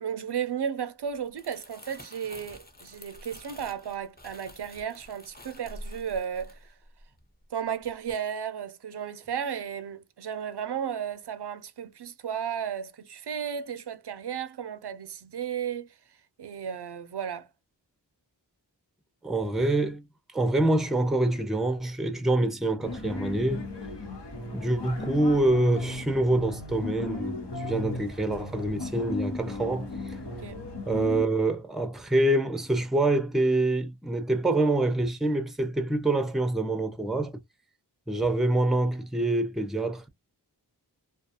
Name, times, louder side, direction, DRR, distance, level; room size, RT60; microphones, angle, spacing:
voice 1, 0.0-6.7 7.5-15.9 16.4-17.5 30.2-30.6, right 8 dB, 70° right, 0.5 m, -34 dB
Crumpling crinkling, 1.1-7.5 7.8-8.1, left 1 dB, 20° left, 0.9 m, -48 dB
voice 2, 19.2-20.0 20.3-23.7 24.5-30.2 30.9-37.3 38.1-40.1, right 2 dB, ahead, 0.5 m, -26 dB
sound 1, 22.8-31.2, left 2 dB, 75° left, 1.1 m, -36 dB
2.4 x 2.3 x 2.7 m
wide cardioid pair, 45°, 42 cm